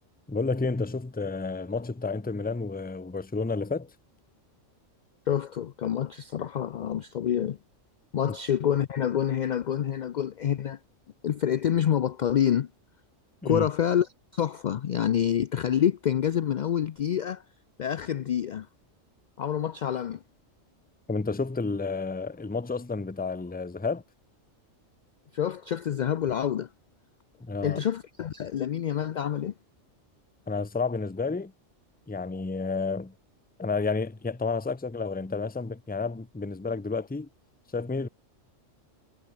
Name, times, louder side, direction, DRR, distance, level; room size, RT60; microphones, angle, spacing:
voice 1, 0.3-3.9 8.3-8.4 13.4-13.7 21.1-24.0 27.4-27.8 30.5-31.5 32.1-33.1 33.6-37.3 37.7-38.1, left 4 dB, 10° left, 0.5 m, -30 dB
voice 2, 5.3-7.6 8.1-10.8 11.2-12.7 13.4-17.4 17.8-18.7 19.4-20.2 25.3-26.7 27.6-29.5, left 9 dB, 65° left, 0.4 m, -27 dB
omnidirectional pair, 1.3 m